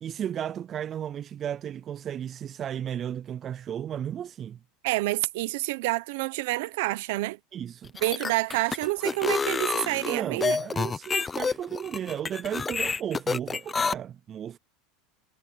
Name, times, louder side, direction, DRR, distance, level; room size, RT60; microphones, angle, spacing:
voice 1, 0.0-4.6 7.5-7.9 10.1-14.6, right 9 dB, 30° right, 0.3 m, -34 dB
voice 2, 4.8-7.4 8.0-10.6, right 20 dB, 75° right, 1.0 m, -28 dB
sound 1, 7.8-13.9, left 4 dB, 15° left, 0.9 m, -28 dB
supercardioid pair, 135°, 0 cm